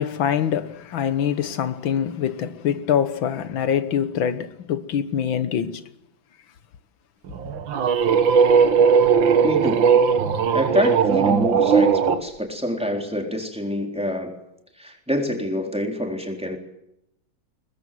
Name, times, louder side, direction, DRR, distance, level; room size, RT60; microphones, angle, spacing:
voice 1, 0.0-5.8, left 8 dB, 85° left, 1.9 m, -24 dB
sound 1, 7.3-12.2, right 6 dB, 80° right, 2.1 m, -18 dB
voice 2, 9.4-9.9 10.5-14.4 14.8-16.6, equal, 5° right, 3.9 m, -26 dB
22.5 x 21.0 x 7.7 m
omnidirectional pair, 2.1 m